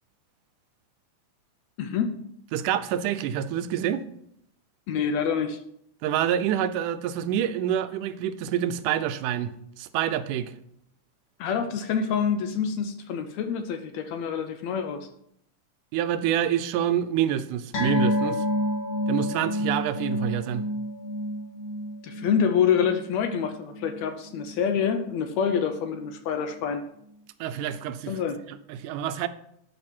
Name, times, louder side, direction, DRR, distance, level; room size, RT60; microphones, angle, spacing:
voice 1, 1.8-2.2 4.9-5.6 11.4-15.1 22.0-26.8 28.1-28.4, left 7 dB, 75° left, 1.8 m, -26 dB
voice 2, 2.5-4.0 6.0-10.5 15.9-18.4 19.1-20.6 27.4-28.2 28.7-29.3, right 10 dB, 85° right, 2.2 m, -27 dB
sound 1, 17.7-24.5 24.8-25.0 25.4-25.5, left 1 dB, 55° left, 3.0 m, -30 dB
12.0 x 5.6 x 4.4 m
omnidirectional pair, 3.6 m